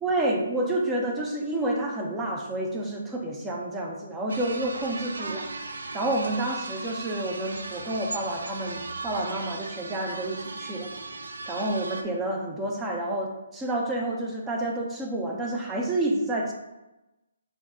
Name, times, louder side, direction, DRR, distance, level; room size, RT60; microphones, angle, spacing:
voice 1, 0.0-5.5 5.9-10.9 11.5-16.5, right 1 dB, 10° right, -1 dB, 0.5 m, -29 dB
sound 1, 4.3-12.0, right 3 dB, 75° right, 0.5 m, -37 dB
3.6 x 2.3 x 4.1 m, 0.98 s
figure-of-eight pair, 145°, 0 cm